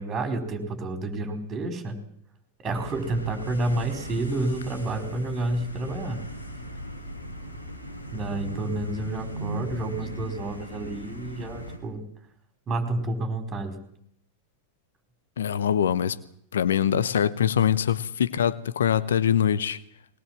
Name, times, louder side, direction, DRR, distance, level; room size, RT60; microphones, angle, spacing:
voice 1, 0.0-2.0 2.6-6.2 8.1-12.0 12.7-13.8, right 2 dB, 25° right, 5.0 m, -30 dB
sound 1, 2.6-11.8, right 1 dB, 80° left, 5.2 m, -38 dB
voice 2, 15.4-16.2 16.5-19.8, left 9 dB, 65° left, 0.9 m, -23 dB
21.5 x 20.0 x 7.7 m
figure-of-eight pair, 90°, 0 cm